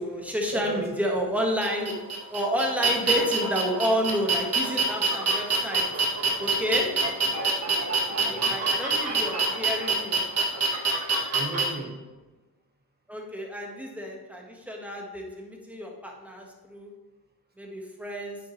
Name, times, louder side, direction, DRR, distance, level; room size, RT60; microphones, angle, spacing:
voice 1, 0.0-2.0 2.3-5.9 6.4-6.9 8.2-10.2 13.1-16.9 17.6-18.4, equal, 5° right, 0 dB, 1.4 m, -30 dB
voice 2, 0.5-0.8 6.2-6.4 7.3-8.7 11.3-11.9, right 3 dB, 25° right, 2 dB, 1.3 m, -38 dB
sound 1, 1.6-11.6, right 4 dB, 40° right, 1.6 m, -26 dB
9.2 x 6.2 x 3.2 m, 1.2 s
cardioid pair, 120°, 38 cm